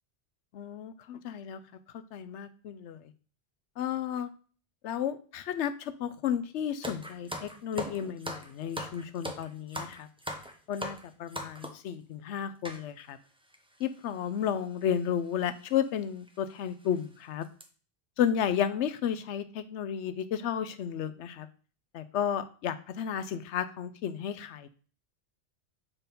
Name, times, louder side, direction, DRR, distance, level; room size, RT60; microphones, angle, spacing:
voice 1, 0.5-1.6 2.1-3.1 3.8-4.3 4.8-10.1 10.7-13.2 13.8-17.5 18.2-21.5 21.9-24.7, left 9 dB, 85° left, 12 dB, 0.9 m, -32 dB
sound 1, 6.8-11.9 12.6-12.8 13.5-13.6 13.8-14.0 15.0-15.2 15.6-15.7 16.3-16.4 16.8-17.0 17.4-17.6, equal, 5° right, 1.0 m, -39 dB
7.3 x 4.5 x 5.2 m, 0.39 s
omnidirectional pair, 1.2 m